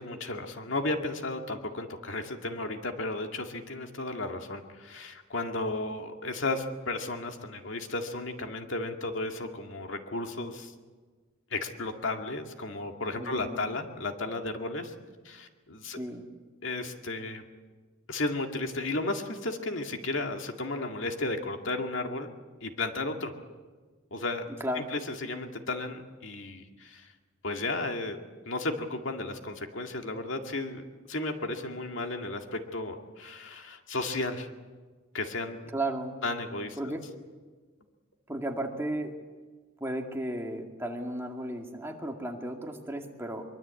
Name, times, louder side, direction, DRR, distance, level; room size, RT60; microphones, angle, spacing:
voice 1, 0.0-10.7 11.5-14.9 15.2-16.0 16.6-17.4 18.1-22.3 22.6-23.4 24.1-24.5 24.7-27.1 27.4-28.2 28.5-34.5 35.1-35.7 36.2-36.9, left 2 dB, 70° left, 4 dB, 2.2 m, -34 dB
voice 2, 13.2-13.6 15.9-16.2 24.6-24.8 35.7-36.1 36.8-37.0 38.3-39.1 39.8-43.4, right 1 dB, 15° right, 2 dB, 2.3 m, -34 dB
23.5 x 23.5 x 8.4 m, 1.4 s
head